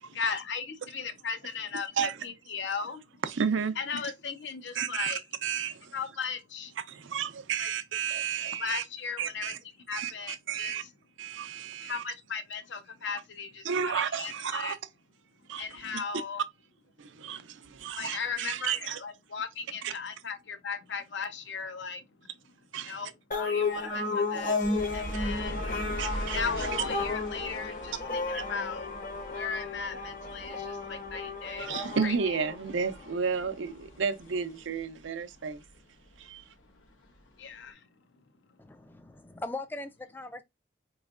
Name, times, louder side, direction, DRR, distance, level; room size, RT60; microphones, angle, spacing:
voice 1, 0.1-3.0 3.8-5.2 5.9-6.7 7.6-7.7 8.6-9.5 9.9-10.9 11.8-14.8 15.6-16.4 18.0-22.0 22.9-24.6 24.9-25.6 26.3-28.9 29.3-31.7 32.0-32.4 37.4-37.8, left 5 dB, 70° left, 0.6 m, -37 dB
voice 2, 3.2-3.8 4.8-5.9 6.9-8.8 9.2-9.6 9.9-10.8 11.2-12.0 13.6-14.8 15.5-16.0 17.0-19.0 19.8-19.9 22.7-23.0 26.0-26.4 31.6-35.6 36.2-36.4, right 6 dB, 80° right, 0.5 m, -32 dB
sound 1, 23.3-33.1, left 3 dB, 45° left, 0.9 m, -33 dB
sound 2, 24.6-35.8 36.1-37.2 37.6-37.7, equal, 85° left, 1.3 m, -42 dB
voice 3, 38.6-40.4, left 2 dB, 10° left, 0.3 m, -40 dB
4.4 x 3.1 x 2.4 m
head